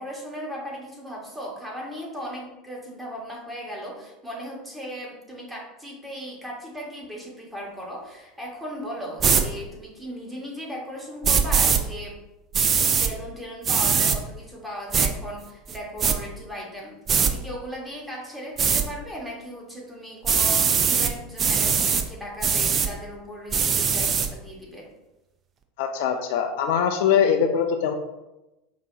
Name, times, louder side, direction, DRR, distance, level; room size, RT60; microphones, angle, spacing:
voice 1, 0.0-12.2 12.9-17.0 17.2-24.9, equal, 5° right, -3 dB, 1.4 m, -37 dB
sound 1, 9.2-9.4 11.2-11.8 12.5-13.1 13.6-14.2 14.9-15.1 15.7-16.2 17.1-17.3 18.6-18.8 20.2-21.1 21.4-22.0 22.4-22.9 23.5-24.3, right 6 dB, 35° right, 0.4 m, -21 dB
voice 2, 25.8-27.9, left 7 dB, 60° left, 6 dB, 0.3 m, -22 dB
4.8 x 2.8 x 2.6 m, 0.97 s
figure-of-eight pair, 80°, 0 cm